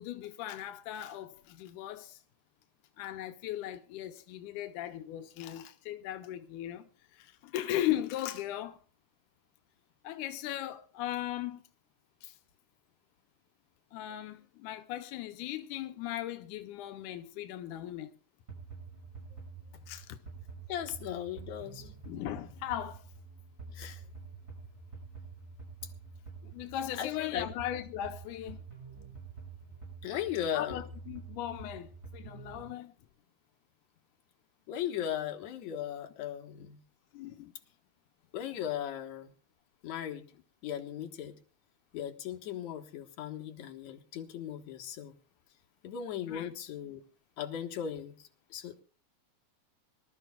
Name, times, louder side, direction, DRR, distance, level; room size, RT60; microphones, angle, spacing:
voice 1, 0.0-2.2 3.0-8.8 10.0-11.6 12.2-12.4 13.9-18.1 19.9-20.2 22.1-23.0 26.4-28.6 30.5-32.9 36.6-36.7 37.1-37.5 46.3-46.5, left 13 dB, 90° left, 2.2 m, -38 dB
sound 1, 18.5-32.7, right 4 dB, 30° right, 7.4 m, -48 dB
voice 2, 20.7-21.9 23.7-24.0 27.0-27.5 30.0-30.8 34.7-36.8 38.3-39.3 39.8-40.3 40.6-41.3 41.9-45.1 45.8-47.0 47.4-48.2 48.5-48.8, left 10 dB, 70° left, 2.6 m, -37 dB
25.0 x 12.5 x 2.3 m
omnidirectional pair, 3.5 m